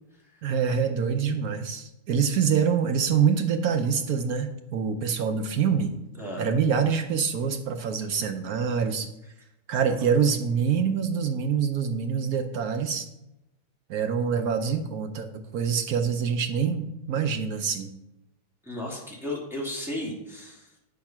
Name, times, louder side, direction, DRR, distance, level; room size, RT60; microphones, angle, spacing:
voice 1, 0.4-5.9 6.4-9.1 9.7-13.1 13.9-17.9, right 6 dB, 65° right, 7 dB, 1.0 m, -25 dB
voice 2, 6.2-6.5 18.6-20.8, left 1 dB, ahead, -4 dB, 2.3 m, -34 dB
8.6 x 6.0 x 5.9 m, 0.90 s
omnidirectional pair, 2.0 m